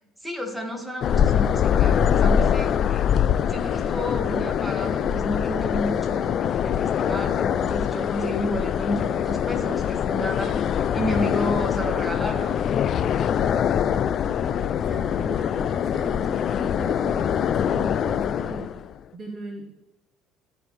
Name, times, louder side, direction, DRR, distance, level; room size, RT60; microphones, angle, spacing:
voice 1, 0.2-3.0 3.5-6.4 6.6-12.6, equal, ahead, 1 dB, 2.0 m, -31 dB
sound 1, 1.0-18.9, left 8 dB, 50° left, 0.3 m, -23 dB
voice 2, 13.4-18.7 19.1-19.7, right 2 dB, 35° right, 3 dB, 1.1 m, -39 dB
14.0 x 4.9 x 3.3 m, 1.0 s
hypercardioid pair, 60°, 0 cm